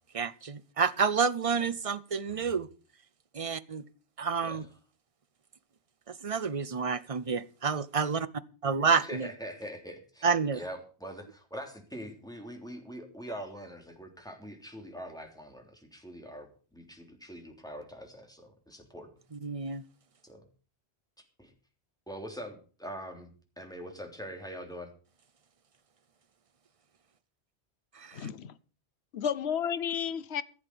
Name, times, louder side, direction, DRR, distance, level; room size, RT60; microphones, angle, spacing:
voice 1, 0.1-2.7 3.3-3.8 4.2-4.6 6.1-8.3 8.6-9.3 10.2-10.6 19.3-19.8 27.9-28.3, right 5 dB, 35° right, 0.7 m, -29 dB
voice 2, 9.0-10.3 10.5-19.1 20.2-20.4 21.2-21.5 22.1-23.3 23.6-24.9, equal, 5° left, 3.2 m, -43 dB
voice 3, 28.1-28.5 29.1-30.4, left 8 dB, 75° left, 1.1 m, -32 dB
15.5 x 8.1 x 6.8 m
omnidirectional pair, 1.1 m